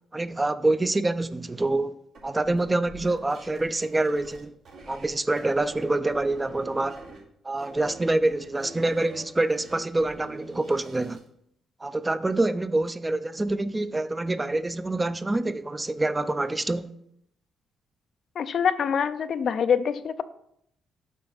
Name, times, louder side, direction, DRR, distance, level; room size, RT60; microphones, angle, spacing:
voice 1, 0.1-1.9 2.2-4.5 4.9-7.0 7.4-11.2 11.8-16.9, right 2 dB, 20° right, 0.4 m, -26 dB
sound 1, 2.1-5.1 5.4-7.2 7.6-11.3, right 2 dB, 75° right, 2.3 m, -46 dB
voice 2, 18.4-20.2, left 7 dB, 60° left, 0.4 m, -25 dB
7.3 x 5.8 x 4.0 m
supercardioid pair, 65°, 0 cm